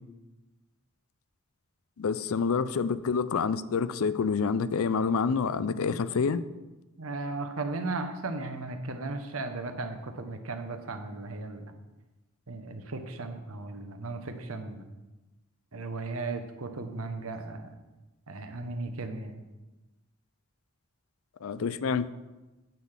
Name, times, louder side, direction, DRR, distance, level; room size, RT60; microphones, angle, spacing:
voice 1, 2.0-6.4 21.4-22.1, left 5 dB, 70° left, 0.4 m, -27 dB
voice 2, 7.0-11.7 12.5-14.9 15.7-17.7 18.3-19.4, right 3 dB, 70° right, 1.0 m, -36 dB
9.4 x 4.0 x 7.2 m
head